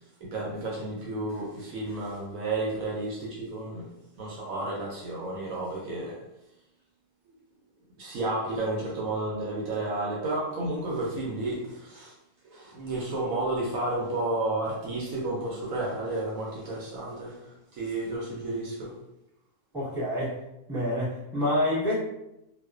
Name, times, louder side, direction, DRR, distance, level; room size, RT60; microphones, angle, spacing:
voice 1, 0.2-3.9 4.2-6.2 8.0-12.1 12.4-18.9, right 2 dB, 75° right, -3 dB, 0.9 m, -32 dB
voice 2, 19.7-20.4 20.7-21.9, left 1 dB, 5° right, -9 dB, 1.0 m, -27 dB
2.3 x 2.3 x 2.3 m, 0.89 s
omnidirectional pair, 1.6 m